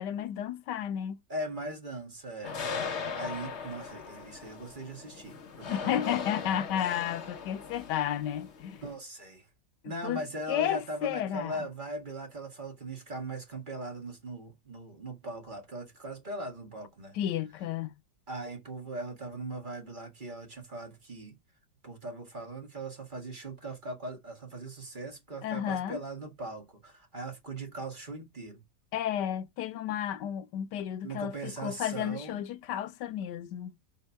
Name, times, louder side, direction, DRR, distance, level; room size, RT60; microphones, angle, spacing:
voice 1, 0.0-1.2 5.7-8.8 10.0-11.6 17.1-17.9 25.4-26.0 28.9-33.8, left 10 dB, 85° left, 1.3 m, -32 dB
voice 2, 1.3-2.6 3.1-5.9 8.8-9.5 9.8-17.2 18.3-21.4 21.8-28.6 31.0-32.4, right 2 dB, 30° right, 1.8 m, -40 dB
sound 1, 2.4-8.9, left 5 dB, 45° left, 1.2 m, -39 dB
5.1 x 4.5 x 5.6 m
omnidirectional pair, 1.8 m